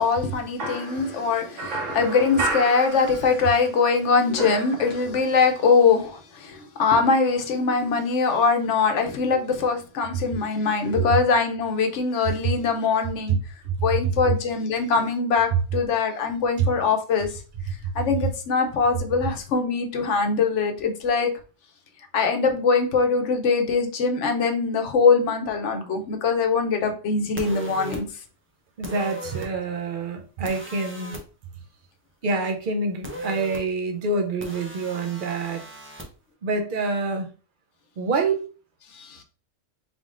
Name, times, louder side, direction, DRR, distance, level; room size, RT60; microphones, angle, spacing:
voice 1, 0.0-13.4 13.8-17.4 17.9-21.3 22.1-28.0 38.9-39.2, left 4 dB, 70° left, 1.0 m, -22 dB
sound 1, 0.6-3.6 3.9-5.4, right 2 dB, 70° right, 1.4 m, -32 dB
sound 2, 27.4-28.0 28.8-29.5 30.4-31.2 33.0-33.6 34.4-36.1, right 1 dB, 15° right, 0.5 m, -36 dB
voice 2, 28.8-31.1 32.2-35.6 36.4-37.3 38.0-38.4, right 3 dB, 50° right, 0.7 m, -27 dB
3.8 x 3.6 x 2.4 m
omnidirectional pair, 1.3 m